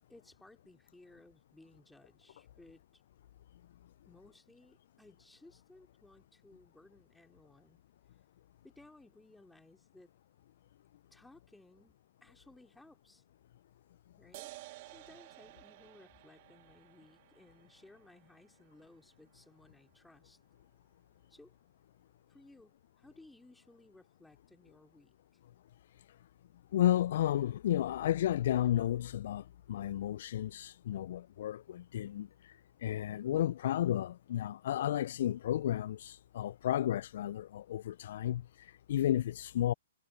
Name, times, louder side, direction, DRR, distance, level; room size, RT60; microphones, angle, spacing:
voice 1, 0.1-3.0 4.0-7.8 8.6-10.1 11.1-11.9 12.2-13.2 14.2-20.4 21.3-21.5 22.3-25.1, left 2 dB, 5° left, 3.0 m, -60 dB
sound 1, 14.3-21.3, right 21 dB, 45° right, 2.2 m, -55 dB
voice 2, 26.7-32.3 32.8-38.4 38.9-39.7, left 12 dB, 55° left, 0.4 m, -32 dB
hypercardioid pair, 125°, 0 cm